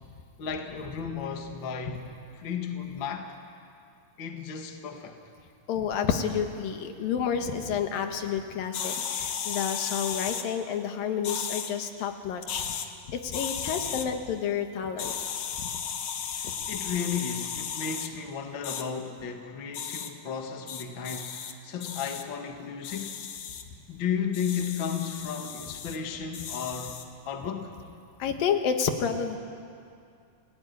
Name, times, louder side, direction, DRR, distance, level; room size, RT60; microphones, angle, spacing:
voice 1, 0.4-3.4 4.2-5.2 16.7-23.2 23.9-27.0 27.3-27.7, left 7 dB, 40° left, 4 dB, 2.0 m, -34 dB
voice 2, 5.7-15.1 16.4-16.5 28.2-29.4, left 7 dB, 80° left, 6 dB, 3.1 m, -30 dB
sound 1, 8.7-10.5 11.2-11.7 12.4-12.9 13.3-14.1 15.0-18.1 18.6-18.8 19.7-20.1 20.7-21.5 21.8-22.2 22.8-23.6 24.3-26.0 26.3-27.1, left 7 dB, 60° left, 1.9 m, -35 dB
29.0 x 17.5 x 9.6 m, 2.4 s
omnidirectional pair, 4.1 m